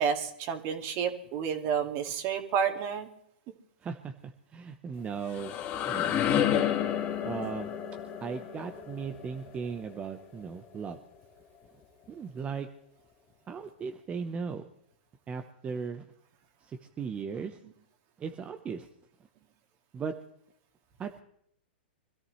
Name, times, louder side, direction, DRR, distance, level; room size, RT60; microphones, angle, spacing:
voice 1, 0.0-3.1, right 7 dB, 40° right, 5 dB, 2.2 m, -30 dB
voice 2, 3.8-5.6 5.9-6.7 7.2-7.7 8.2-11.0 12.1-12.7 13.5-14.6 15.3-16.0 16.6-17.6 18.2-18.9 19.9-20.1 21.0-21.2, right 6 dB, 20° right, 6 dB, 1.0 m, -37 dB
sound 1, 5.0-10.7, left 10 dB, 30° left, 2.0 m, -31 dB
25.0 x 14.0 x 3.2 m, 0.71 s
hypercardioid pair, 120°, 6 cm